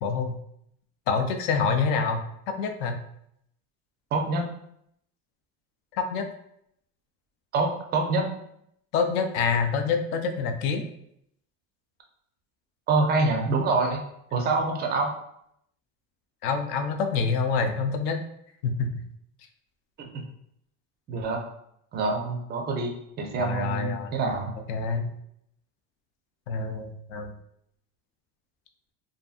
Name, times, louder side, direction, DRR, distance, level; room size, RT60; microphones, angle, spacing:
voice 1, 0.0-0.4 1.1-2.2 2.6-3.0 5.9-6.2 8.9-10.8 16.4-18.2 18.6-18.9 23.4-24.1 24.7-25.1 26.5-27.3, left 5 dB, 65° left, 5 dB, 0.5 m, -26 dB
voice 2, 4.1-4.5 7.5-8.3 12.9-14.0 14.3-15.1 20.0-20.2 21.1-21.4 21.9-24.5, right 3 dB, 25° right, 2 dB, 0.4 m, -26 dB
2.6 x 2.6 x 2.3 m, 0.74 s
cardioid pair, 140°, 38 cm